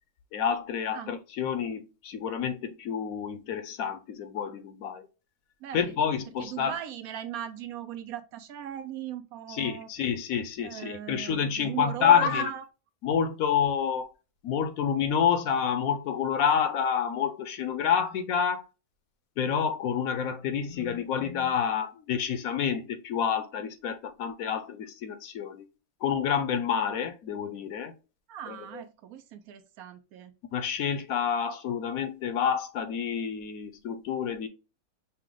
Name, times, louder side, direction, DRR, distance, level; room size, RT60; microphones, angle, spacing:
voice 1, 0.3-5.1 5.7-6.7 9.5-12.5 13.0-14.1 14.4-18.7 19.4-25.7 26.0-27.9 28.5-28.6 30.5-34.5, left 7 dB, 70° left, 1.0 m, -28 dB
voice 2, 5.6-6.0 6.4-9.9 10.6-12.6 28.3-30.4, right 9 dB, 70° right, 1.0 m, -38 dB
5.8 x 2.2 x 3.7 m
omnidirectional pair, 1.7 m